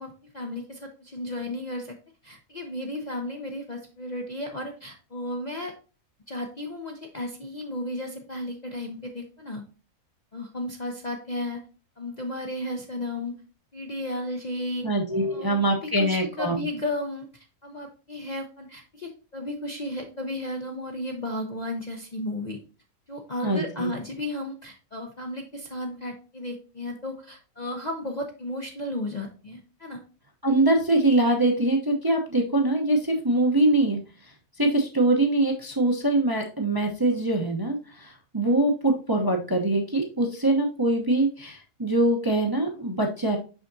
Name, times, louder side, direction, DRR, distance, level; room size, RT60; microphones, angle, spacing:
voice 1, 0.0-2.0 2.2-5.7 6.3-9.6 10.3-11.6 12.0-13.4 13.7-14.9 15.3-22.6 23.1-30.0, left 1 dB, 40° left, 2 dB, 0.7 m, -34 dB
voice 2, 14.8-16.6 23.4-23.9 30.4-34.0 34.6-43.4, right 2 dB, 20° right, 1 dB, 0.7 m, -23 dB
6.2 x 5.7 x 2.6 m, 0.34 s
omnidirectional pair, 1.5 m